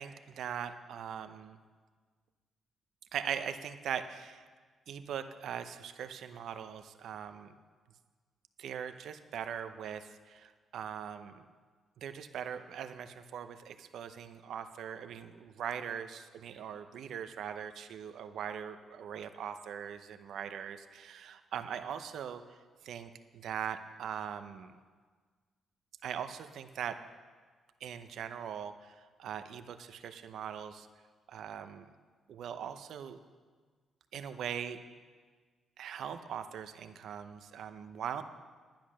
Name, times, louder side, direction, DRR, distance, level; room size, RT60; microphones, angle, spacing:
voice 1, 0.0-1.6 3.1-4.5 4.9-7.5 8.6-11.4 12.0-22.4 22.8-24.7 26.0-27.0 27.8-30.9 31.3-31.9 32.3-33.2 34.1-34.8 35.8-38.2, right 8 dB, 75° right, 9 dB, 0.7 m, -41 dB
10.5 x 10.0 x 6.2 m, 1.5 s
cardioid pair, 80°, 0 cm